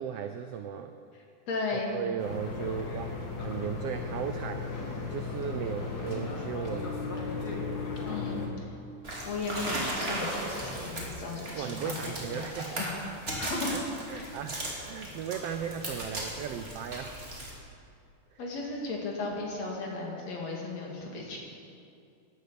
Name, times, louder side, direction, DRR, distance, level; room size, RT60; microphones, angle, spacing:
voice 1, 0.0-0.9 1.7-4.7 5.1-6.9 11.5-12.8 13.7-13.8 14.1-17.1 18.3-18.4, right 8 dB, 85° right, 7 dB, 1.3 m, -36 dB
voice 2, 1.1-1.9 8.1-8.4 9.2-12.4 12.8-12.9 13.4-14.4 18.4-21.4, left 3 dB, 55° left, -1 dB, 3.5 m, -35 dB
sound 1, 2.2-8.5, left 4 dB, 35° left, 2.0 m, -35 dB
sound 2, 9.0-17.5, right 1 dB, 20° right, 2.8 m, -37 dB
17.0 x 11.5 x 6.9 m, 2.5 s
omnidirectional pair, 3.6 m